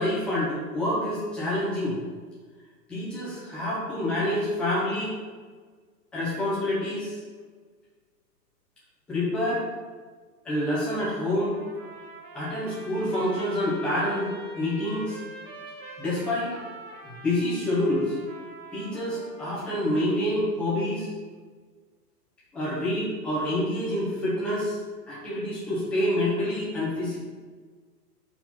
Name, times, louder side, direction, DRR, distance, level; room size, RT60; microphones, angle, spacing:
voice 1, 0.0-2.0 2.9-5.1 6.1-7.2 9.1-9.6 10.4-11.5 12.3-14.3 14.5-15.2 16.0-16.6 17.0-18.2 18.7-21.1 22.5-24.8 25.1-27.2, left 1 dB, ahead, -9 dB, 0.6 m, -27 dB
Trumpet, 11.3-20.1, right 1 dB, 30° right, 0.9 m, -45 dB
4.5 x 4.3 x 5.4 m, 1.5 s
hypercardioid pair, 160°, 48 cm